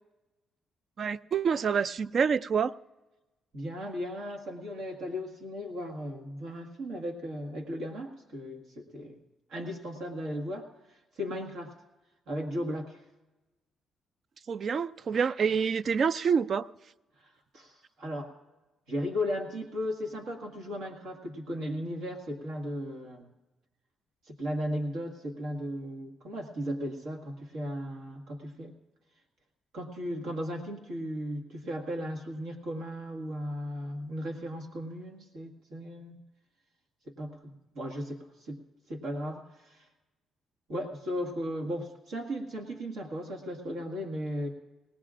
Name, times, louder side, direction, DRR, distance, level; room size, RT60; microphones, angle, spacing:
voice 1, 1.0-2.7 14.5-16.7, right 6 dB, 50° right, 0.3 m, -27 dB
voice 2, 3.5-9.2 9.5-11.7 12.3-13.0 17.2-18.3 18.9-23.3 24.3-28.7 29.7-36.2 37.0-38.6 38.9-39.9 40.7-44.5, equal, 80° right, 1.7 m, -36 dB
21.5 x 18.0 x 2.5 m
cardioid pair, 90°, 0 cm